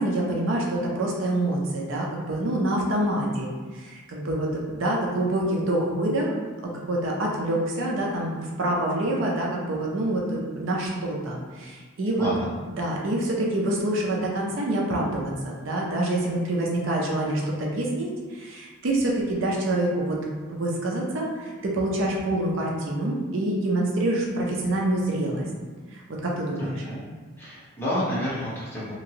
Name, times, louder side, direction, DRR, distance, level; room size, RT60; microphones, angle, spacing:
voice 1, 0.0-6.4 6.9-12.3 12.8-20.2 20.5-25.4 25.9-26.8, right 1 dB, 65° right, -2 dB, 0.5 m, -26 dB
voice 2, 12.2-12.5 26.6-27.0 27.4-29.0, equal, 10° left, -10 dB, 0.8 m, -30 dB
2.9 x 2.5 x 2.8 m, 1.4 s
head